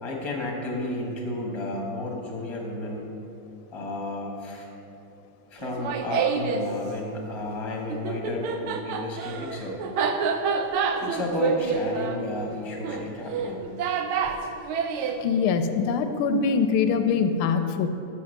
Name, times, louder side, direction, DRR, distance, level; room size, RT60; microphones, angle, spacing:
voice 1, 0.0-3.1 3.7-4.7 5.5-9.8 11.0-13.7, left 1 dB, 15° left, -1 dB, 1.0 m, -32 dB
Laughter, 5.6-6.7 7.9-15.2, right 6 dB, 80° right, 1.5 m, -28 dB
voice 2, 15.2-17.9, left 5 dB, 85° left, 8 dB, 1.5 m, -23 dB
7.0 x 7.0 x 6.5 m, 2.9 s
omnidirectional pair, 2.3 m